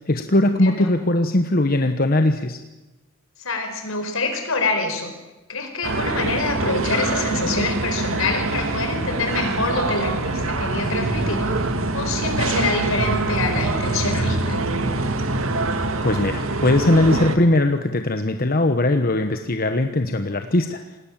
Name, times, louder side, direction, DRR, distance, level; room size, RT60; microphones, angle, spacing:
voice 1, 0.1-2.6 16.0-20.8, left 1 dB, 45° left, 7 dB, 1.2 m, -20 dB
voice 2, 3.4-5.1 5.5-11.5 11.9-14.6, left 3 dB, 75° left, 6 dB, 4.6 m, -26 dB
sound 1, 5.8-17.4, right 2 dB, 75° right, 2.2 m, -24 dB
27.5 x 19.5 x 7.5 m, 1.1 s
head